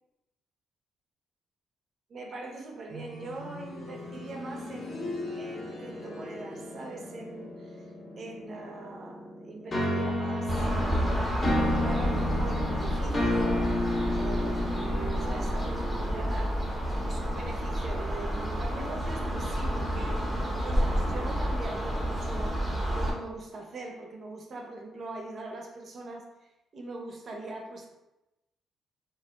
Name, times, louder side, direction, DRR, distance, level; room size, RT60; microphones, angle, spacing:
voice 1, 2.1-7.9 8.2-16.6 17.0-22.6 22.9-27.9, right 2 dB, 50° right, 1 dB, 0.4 m, -42 dB
sound 1, 2.9-13.7 15.0-15.1, left 1 dB, 90° left, 1.0 m, -43 dB
sound 2, 9.7-16.6, left 1 dB, 35° left, 0.6 m, -30 dB
sound 3, 10.5-23.1, equal, ahead, 0.7 m, -30 dB
2.3 x 2.0 x 3.0 m, 0.96 s
cardioid pair, 90°, 0 cm